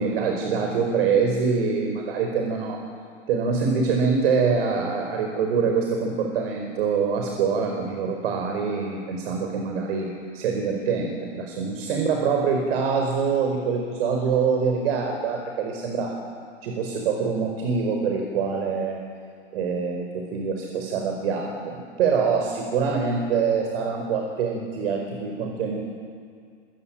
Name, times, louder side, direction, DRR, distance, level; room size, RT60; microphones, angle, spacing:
voice 1, 0.0-2.8 3.3-10.1 10.3-16.2 16.6-19.0 19.5-25.8, right 5 dB, 55° right, 3 dB, 4.9 m, -25 dB
26.5 x 24.0 x 9.1 m, 2.3 s
hypercardioid pair, 130°, 35 cm